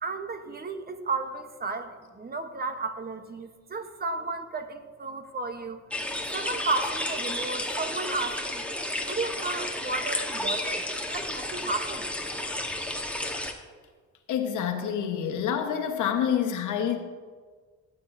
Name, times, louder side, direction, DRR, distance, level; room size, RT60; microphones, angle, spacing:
voice 1, 0.0-5.8 6.3-8.6 9.0-12.1, right 3 dB, 30° right, 8 dB, 1.0 m, -33 dB
sound 1, 5.9-13.5, left 1 dB, 5° left, 1.2 m, -32 dB
voice 2, 14.3-17.0, left 8 dB, 80° left, 5 dB, 1.2 m, -27 dB
16.5 x 8.6 x 2.6 m, 1.5 s
cardioid pair, 90°, 30 cm